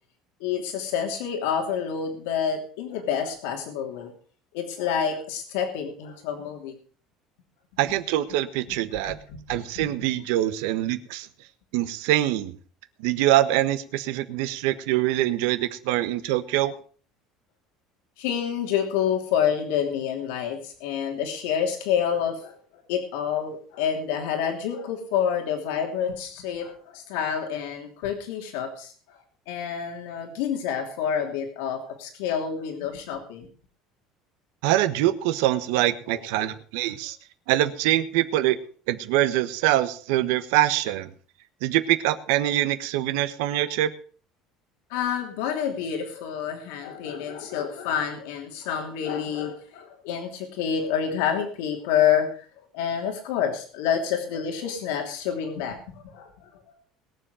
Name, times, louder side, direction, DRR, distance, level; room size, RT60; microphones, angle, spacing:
voice 1, 0.4-4.1 4.5-6.7 9.0-9.4 9.8-9.9 18.2-22.6 22.9-29.2 29.5-33.5 36.1-36.5 44.9-52.5 52.7-55.8 56.0-56.5, left 8 dB, 85° left, 2 dB, 3.0 m, -28 dB
voice 2, 7.8-9.2 9.5-11.3 11.7-12.5 13.0-16.7 34.6-37.2 37.5-38.6 38.9-41.1 41.6-43.9, right 14 dB, 80° right, 11 dB, 1.4 m, -24 dB
21.0 x 7.6 x 5.0 m, 0.42 s
cardioid pair, 175°, 0 cm